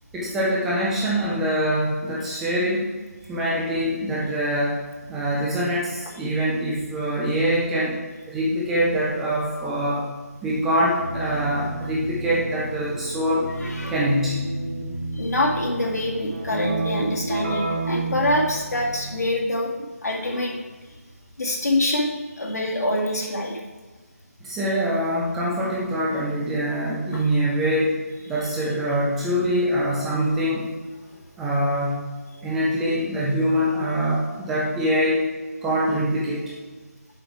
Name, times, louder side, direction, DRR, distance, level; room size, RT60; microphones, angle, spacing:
voice 1, 0.1-2.9 3.3-4.8 5.1-8.0 8.3-10.0 10.4-13.5 13.9-14.5 24.4-28.0 28.3-30.7 31.4-32.1 32.4-35.3 35.6-36.5, equal, 5° right, -6 dB, 0.3 m, -24 dB
Keyboard (musical), 11.0-19.4, right 2 dB, 50° right, 1.9 m, -31 dB
voice 2, 13.6-14.0 15.1-20.6 21.4-23.6 27.1-27.3, left 1 dB, 80° left, -2 dB, 2.0 m, -25 dB
7.0 x 5.3 x 4.7 m, 1.3 s
figure-of-eight pair, 170°, 9 cm